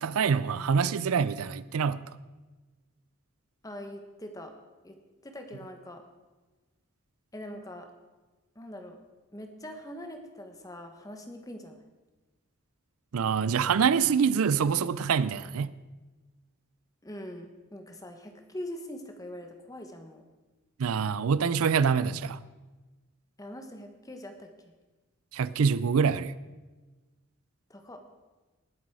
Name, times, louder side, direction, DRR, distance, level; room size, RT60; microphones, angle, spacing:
voice 1, 0.0-2.0 13.1-15.7 20.8-22.4 25.3-26.3, right 6 dB, 80° right, 17 dB, 0.4 m, -25 dB
voice 2, 3.6-4.5 4.8-5.0 5.2-6.0 7.3-7.9 8.5-9.0 9.3-11.8 17.0-20.2 23.4-24.5 27.7-28.0, left 1 dB, 15° left, 5 dB, 1.2 m, -42 dB
19.0 x 8.1 x 4.8 m, 1.2 s
head